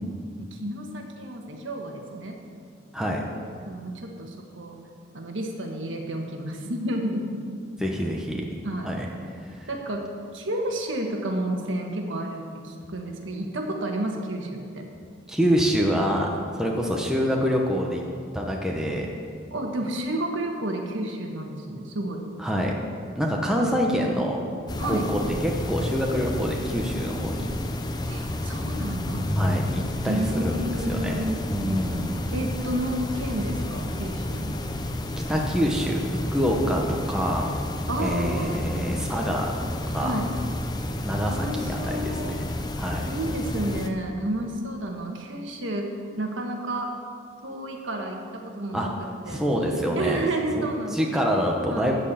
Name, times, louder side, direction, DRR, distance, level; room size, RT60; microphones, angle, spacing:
voice 1, 0.4-2.4 3.7-4.8 5.1-7.4 8.6-9.0 9.7-10.1 10.3-14.9 19.5-22.2 23.6-23.7 24.8-25.1 28.1-29.3 30.0-31.4 32.3-34.6 37.9-38.6 40.0-40.3 41.2-42.3 43.1-45.9 46.2-46.9 47.4-49.4 49.9-51.0 51.7-51.9, right 1 dB, 70° right, 2 dB, 1.4 m, -31 dB
voice 2, 7.8-8.4 8.8-9.1 9.4-9.7 15.3-16.3 16.6-18.0 18.3-19.1 22.4-22.7 23.2-24.4 24.8-27.5 29.3-31.2 31.5-32.2 35.3-37.6 38.0-39.5 39.9-40.1 41.0-42.5 42.8-43.1 48.7-48.9 49.3-50.2 50.9-51.9, equal, 5° right, -1 dB, 0.9 m, -26 dB
sound 1, 24.7-43.9, left 1 dB, 20° left, 0.5 m, -30 dB
13.5 x 4.5 x 8.6 m, 2.2 s
head